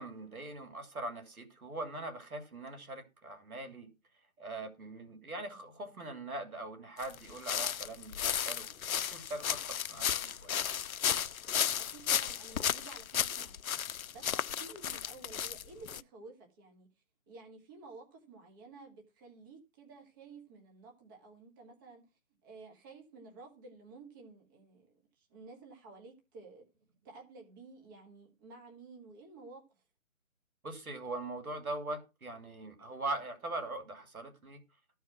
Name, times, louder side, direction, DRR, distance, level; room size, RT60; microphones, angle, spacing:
voice 1, 0.0-3.9 4.4-10.6 30.6-34.6, right 2 dB, 80° right, 3.0 m, -41 dB
sound 1, 7.0-16.0, left 9 dB, 75° left, 0.6 m, -34 dB
voice 2, 11.8-16.9 17.3-22.1 22.4-26.7 27.0-29.8, right 3 dB, 15° right, 1.2 m, -53 dB
13.5 x 4.7 x 6.0 m
figure-of-eight pair, 155°, 42 cm